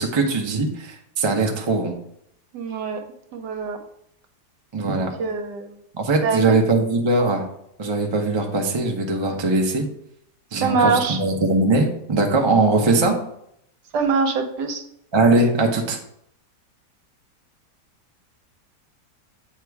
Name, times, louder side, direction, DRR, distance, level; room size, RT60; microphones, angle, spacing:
voice 1, 0.0-1.9 4.7-5.1 5.9-7.4 7.8-9.8 10.5-13.2 15.1-16.0, right 2 dB, 30° right, 2 dB, 0.5 m, -20 dB
voice 2, 2.5-3.0 3.3-3.8 4.9-5.7 6.2-6.4 10.6-11.2 13.9-14.8, right 4 dB, 75° right, 5 dB, 1.4 m, -23 dB
8.3 x 2.9 x 4.6 m, 0.73 s
omnidirectional pair, 1.8 m